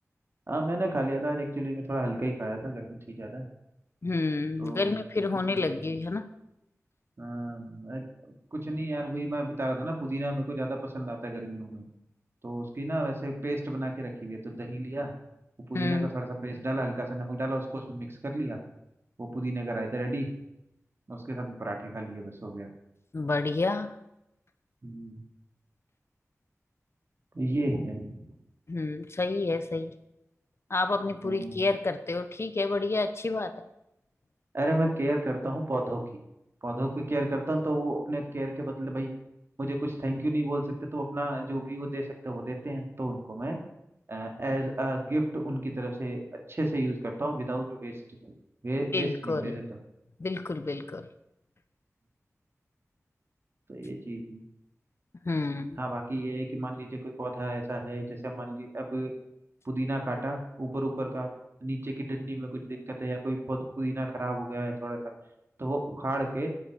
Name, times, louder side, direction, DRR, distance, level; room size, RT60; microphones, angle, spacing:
voice 1, 0.5-3.5 4.6-4.9 5.5-5.7 7.2-11.8 12.4-15.1 15.7-18.6 19.2-20.3 21.1-22.7 24.8-25.2 27.3-28.2 31.2-31.5 34.5-36.0 36.6-39.1 39.6-43.6 44.1-46.2 46.5-47.9 48.2-48.3 48.6-49.6 53.7-54.4 55.8-59.1 59.6-61.3 61.6-65.0 65.6-66.5, right 1 dB, 50° right, 2 dB, 2.3 m, -32 dB
voice 2, 4.0-6.3 15.7-16.1 23.1-23.9 28.7-29.9 30.7-33.6 48.9-49.6 50.2-51.1 55.2-55.8, left 3 dB, 55° left, 11 dB, 0.8 m, -29 dB
9.9 x 9.9 x 6.8 m, 0.87 s
wide cardioid pair, 75°, 5 cm